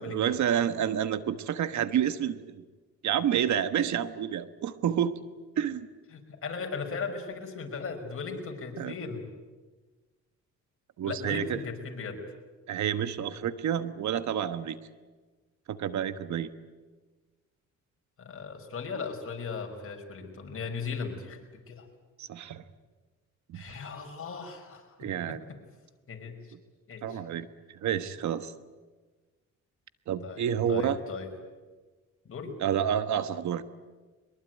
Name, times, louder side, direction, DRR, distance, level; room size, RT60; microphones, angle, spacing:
voice 1, 0.0-2.6 3.0-5.2 5.6-5.9 8.8-8.9 11.0-11.6 12.7-14.8 15.7-16.5 22.2-22.6 23.5-23.8 25.0-25.4 27.0-27.5 27.8-28.5 30.1-31.0 32.6-33.6, right 9 dB, 70° right, 12 dB, 1.3 m, -29 dB
voice 2, 6.1-9.2 11.0-12.2 18.2-21.9 23.5-25.4 26.1-26.5 26.9-27.2 30.2-31.3 32.3-32.6, left 5 dB, 45° left, 4 dB, 5.4 m, -37 dB
23.0 x 21.5 x 9.3 m, 1.3 s
cardioid pair, 90°, 30 cm